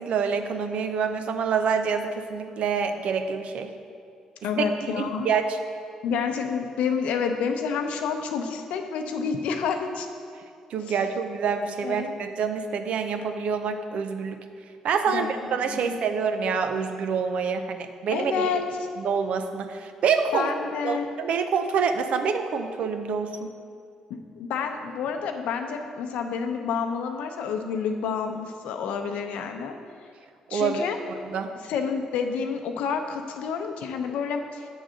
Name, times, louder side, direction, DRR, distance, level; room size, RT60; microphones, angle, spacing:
voice 1, 0.0-3.7 5.0-5.6 10.7-14.4 14.8-18.4 19.0-20.5 20.8-23.5 30.5-30.8 31.3-31.5, right 6 dB, 70° right, 7 dB, 0.6 m, -26 dB
voice 2, 4.4-5.3 6.0-10.1 10.9-11.0 11.8-12.1 15.1-15.3 15.6-16.0 18.1-18.6 20.3-21.1 24.4-29.8 30.5-31.0 31.6-34.7, left 6 dB, 80° left, 5 dB, 0.6 m, -29 dB
8.0 x 3.9 x 6.3 m, 2.3 s
supercardioid pair, 70°, 2 cm